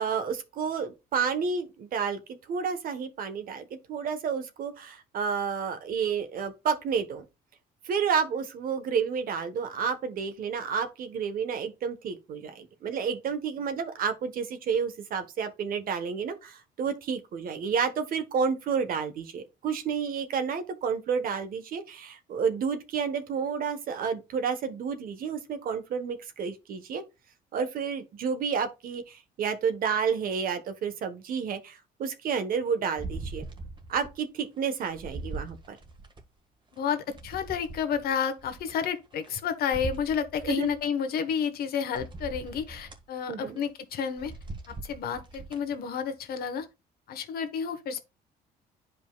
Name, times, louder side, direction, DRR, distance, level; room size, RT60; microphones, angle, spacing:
voice 1, 0.0-7.2 7.8-27.0 27.5-33.4 33.9-35.8 40.4-40.7 43.3-43.6, right 6 dB, 55° right, 1.2 m, -30 dB
sound 1, 33.0-34.2 34.6-36.2 36.7-39.3 39.7-40.9 41.4-41.5 41.9-43.0 43.5-43.7 44.1-45.7 46.2-46.3, right 3 dB, 30° right, 1.5 m, -41 dB
voice 2, 36.7-44.3 44.7-46.7 47.1-48.0, left 7 dB, 65° left, 1.2 m, -30 dB
10.5 x 5.0 x 2.3 m
cardioid pair, 110°, 17 cm